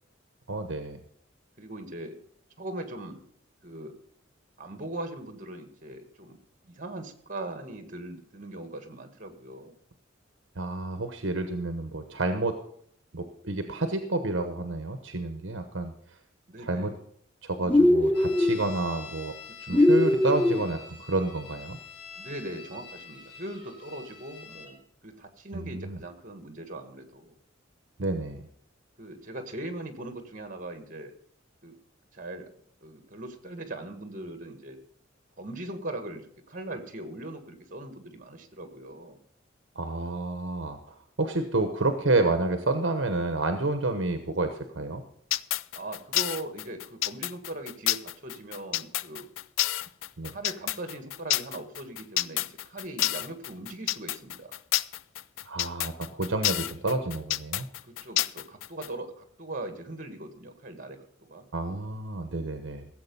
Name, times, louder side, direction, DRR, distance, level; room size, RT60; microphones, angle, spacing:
voice 1, 0.5-1.0 10.6-12.6 13.1-15.9 16.6-16.9 17.4-19.3 19.7-21.8 25.5-26.0 28.0-28.5 39.7-40.8 41.2-45.0 50.2-50.3 55.4-57.7 61.5-62.9, right 2 dB, 65° right, 7 dB, 1.0 m, -29 dB
voice 2, 1.6-2.2 2.6-3.2 3.6-3.9 4.6-6.4 6.6-9.7 16.5-17.0 19.6-20.1 22.2-24.8 25.0-27.4 29.0-31.1 31.6-31.7 32.1-32.5 32.8-34.8 35.4-39.2 45.7-49.3 50.3-54.6 57.8-61.5, right 1 dB, 45° right, 7 dB, 1.8 m, -40 dB
sound 1, 17.7-18.6 19.7-20.6, left 1 dB, 5° left, 0.5 m, -21 dB
sound 2, 18.1-24.7, left 5 dB, 60° left, 2.9 m, -46 dB
sound 3, 45.3-58.9, left 14 dB, 80° left, 0.4 m, -29 dB
15.5 x 7.7 x 5.4 m, 0.65 s
head